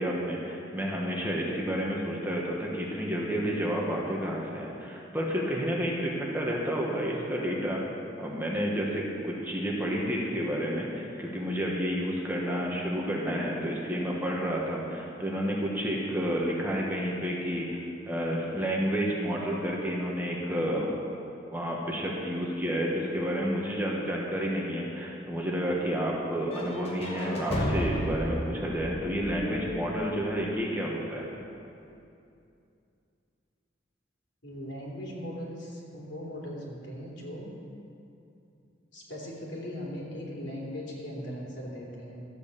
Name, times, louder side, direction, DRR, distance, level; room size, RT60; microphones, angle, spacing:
voice 1, 0.0-20.9 21.5-31.2, equal, 10° right, -3 dB, 1.4 m, -30 dB
sound 1, 26.5-30.4, equal, 35° left, 1.5 m, -33 dB
voice 2, 34.4-37.5 38.9-42.3, equal, 85° left, -4 dB, 3.2 m, -39 dB
13.0 x 8.4 x 6.8 m, 2.6 s
head